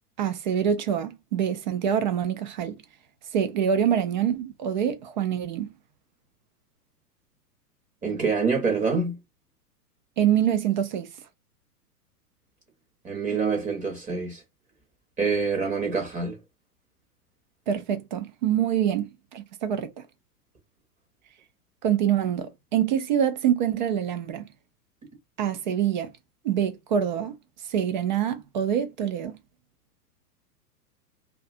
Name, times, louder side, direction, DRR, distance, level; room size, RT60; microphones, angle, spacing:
voice 1, 0.2-2.7 3.3-5.7 10.2-11.1 17.7-19.9 21.8-24.5 25.4-26.1 26.4-27.4 27.7-29.4, right 9 dB, 35° right, 0.4 m, -25 dB
voice 2, 8.0-9.2 13.0-14.4 15.2-16.4, right 4 dB, 15° right, 0.8 m, -26 dB
2.6 x 2.3 x 2.4 m
hypercardioid pair, 110°, 47 cm